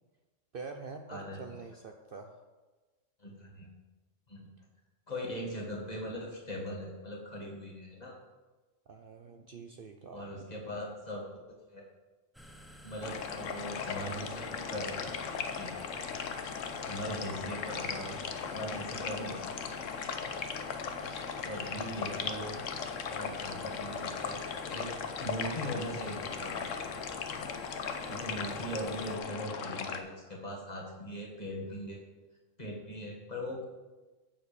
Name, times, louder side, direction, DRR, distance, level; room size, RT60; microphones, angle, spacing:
voice 1, 0.5-2.4 8.9-10.2 21.5-21.6, right 4 dB, 55° right, 5 dB, 0.8 m, -45 dB
voice 2, 1.1-1.4 3.2-3.7 4.3-4.5 5.1-8.2 10.1-11.3 11.7-11.9 12.8-15.7 16.8-20.3 21.4-22.6 23.1-24.4 24.7-24.9 25.2-26.9 28.0-32.0 32.6-33.7, equal, 35° left, -2 dB, 2.0 m, -40 dB
sound 1, 12.3-29.2, equal, ahead, 0.6 m, -52 dB
sound 2, 13.0-30.0, left 6 dB, 80° left, 1.2 m, -38 dB
7.6 x 7.0 x 6.8 m, 1.2 s
omnidirectional pair, 1.3 m